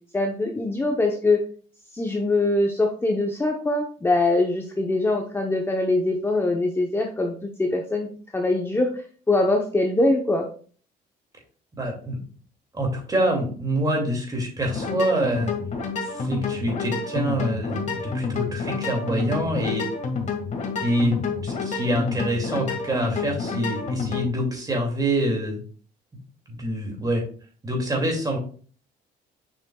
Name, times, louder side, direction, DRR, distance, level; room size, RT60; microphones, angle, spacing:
voice 1, 0.1-1.4 1.9-10.5, left 2 dB, 15° left, 1 dB, 0.8 m, -23 dB
voice 2, 11.8-12.2 12.7-15.5 16.0-19.9 20.8-25.6 26.5-27.2 27.6-28.4, right 1 dB, 20° right, 1 dB, 2.4 m, -26 dB
sound 1, 14.7-24.3, left 4 dB, 45° left, 1.7 m, -29 dB
7.1 x 6.1 x 2.3 m, 0.43 s
cardioid pair, 110°, 17 cm